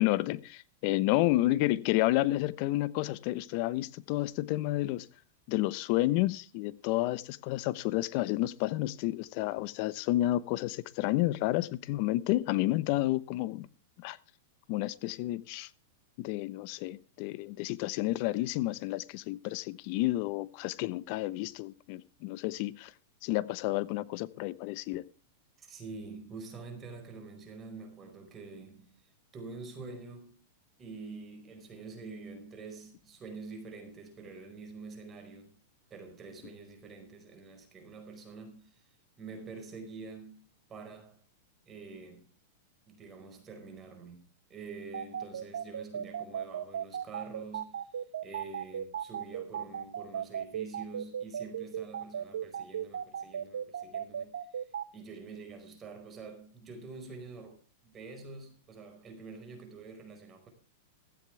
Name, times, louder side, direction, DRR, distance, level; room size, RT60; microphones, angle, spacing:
voice 1, 0.0-5.1 5.5-13.7 14.0-14.2 14.7-15.7 16.2-22.9 23.2-25.0, left 17 dB, 50° left, 1.0 m, -30 dB
voice 2, 25.6-30.4 30.8-35.5 35.9-40.4 40.7-41.2 41.6-42.3 42.9-44.2 44.5-60.5, right 4 dB, 25° right, 4.9 m, -47 dB
sound 1, 44.9-54.8, right 9 dB, 85° right, 1.3 m, -36 dB
15.5 x 14.5 x 3.4 m
hypercardioid pair, 125°, 0 cm